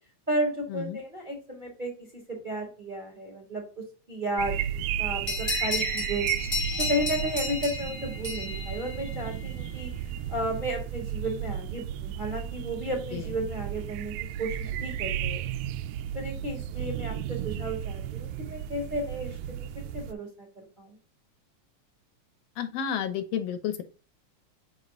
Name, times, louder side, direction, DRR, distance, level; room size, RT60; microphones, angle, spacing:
voice 1, 0.3-1.9 2.3-3.6 4.1-6.2 6.8-9.9 10.3-15.4 16.1-21.0, right 1 dB, 25° right, 2 dB, 1.2 m, -33 dB
sound 1, 4.4-20.1, right 10 dB, 80° right, 1.7 m, -34 dB
sound 2, 5.3-9.5, left 2 dB, 25° left, 1.0 m, -33 dB
voice 2, 22.6-23.8, left 8 dB, 70° left, 11 dB, 1.6 m, -31 dB
6.6 x 4.0 x 3.7 m, 0.36 s
omnidirectional pair, 3.4 m